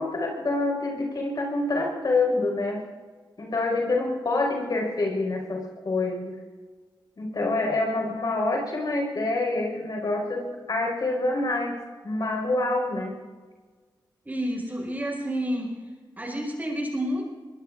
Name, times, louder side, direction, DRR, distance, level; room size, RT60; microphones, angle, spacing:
voice 1, 0.0-2.8 3.4-6.4 7.2-13.2, left 2 dB, 55° left, 1 dB, 5.1 m, -27 dB
voice 2, 14.2-15.7 16.2-17.2, equal, 20° right, -1 dB, 5.2 m, -29 dB
25.0 x 22.5 x 2.6 m, 1.4 s
wide cardioid pair, 130°, 8 cm